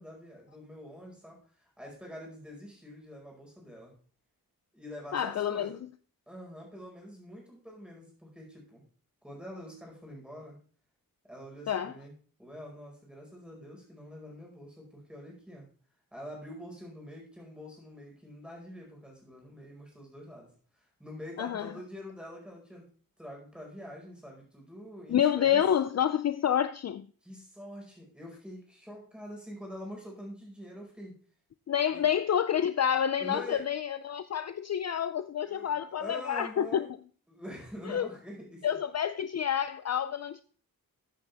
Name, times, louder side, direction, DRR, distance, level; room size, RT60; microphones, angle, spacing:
voice 1, 0.0-3.9 4.7-5.8 6.3-8.8 9.2-10.6 11.2-12.1 12.4-15.7 16.1-22.8 23.2-25.6 27.2-31.2 31.9-32.0 33.2-33.6 35.4-36.9 37.3-38.7, equal, 5° right, 5.1 m, -45 dB
voice 2, 5.1-5.8 11.7-11.9 21.4-21.7 25.1-27.1 31.7-36.9 37.9-38.1 38.6-40.4, left 9 dB, 50° left, 0.4 m, -28 dB
14.0 x 8.4 x 3.5 m
wide cardioid pair, 160°, 35 cm